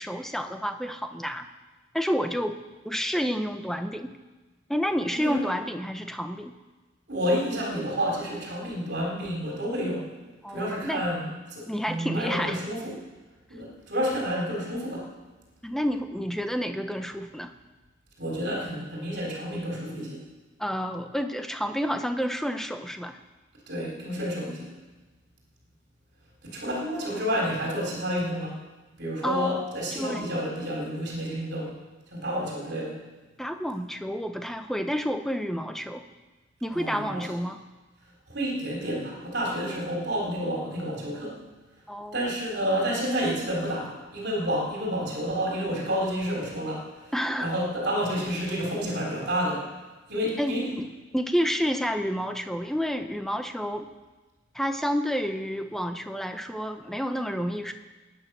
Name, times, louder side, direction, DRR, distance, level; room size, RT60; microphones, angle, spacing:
voice 1, 0.0-1.5 1.9-2.6 2.8-4.2 4.7-6.5 10.4-11.0 11.7-12.6 15.6-17.5 20.6-23.2 29.2-29.6 29.9-30.3 33.4-36.0 36.6-37.6 41.9-42.2 47.1-47.5 50.4-53.9 54.5-57.7, equal, ahead, 7 dB, 0.7 m, -29 dB
voice 2, 7.1-10.1 10.5-12.9 13.5-15.1 18.2-20.2 23.7-24.7 26.4-28.6 29.0-31.7 32.1-33.0 36.7-37.3 38.3-41.4 42.1-47.1 47.4-49.7 50.1-50.7, equal, 55° right, -2 dB, 3.6 m, -30 dB
20.5 x 9.2 x 6.1 m, 1.2 s
head